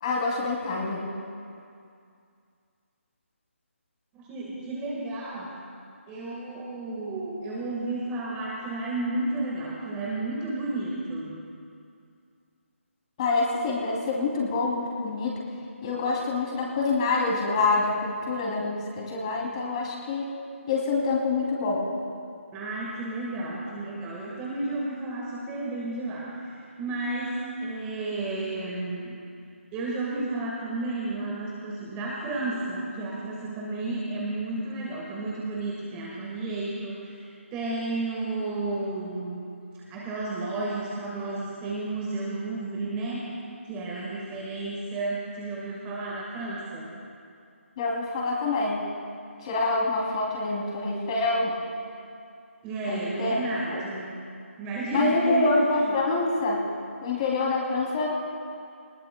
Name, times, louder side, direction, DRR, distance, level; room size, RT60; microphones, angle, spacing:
voice 1, 0.0-1.1 13.2-15.4 15.8-20.3 20.7-21.8 47.8-48.8 49.4-51.5 52.9-53.4 53.7-53.8 54.9-56.6 57.0-58.2, left 3 dB, 25° left, -2 dB, 2.9 m, -26 dB
voice 2, 4.1-5.5 6.1-11.4 22.5-26.3 26.8-29.2 29.7-39.4 39.9-43.3 43.7-46.9 52.6-54.2 54.6-56.0, right 2 dB, 15° right, -5 dB, 1.6 m, -32 dB
21.5 x 19.5 x 2.3 m, 2.4 s
figure-of-eight pair, 155°, 7 cm